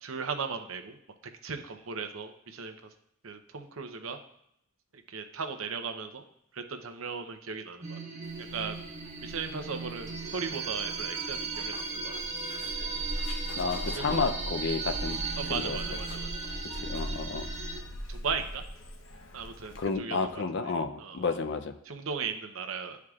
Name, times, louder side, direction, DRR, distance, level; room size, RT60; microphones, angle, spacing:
voice 1, 0.0-1.0 1.4-2.7 3.2-4.2 5.1-6.2 6.5-8.0 8.5-8.8 9.2-11.7 12.0-12.1 13.9-14.3 15.4-16.3 18.1-18.6 19.3-20.7 21.0-21.2 21.9-23.0, right 5 dB, 80° right, 6 dB, 0.7 m, -37 dB
sound 1, 7.8-17.8, right 4 dB, 35° right, 1.2 m, -37 dB
Zipper (clothing), 8.2-19.9, equal, 80° left, 0.9 m, -40 dB
voice 2, 13.6-15.2 15.5-15.8 16.7-17.5 19.8-21.8, left 4 dB, 60° left, 9 dB, 0.5 m, -31 dB
11.0 x 4.7 x 2.4 m, 0.75 s
head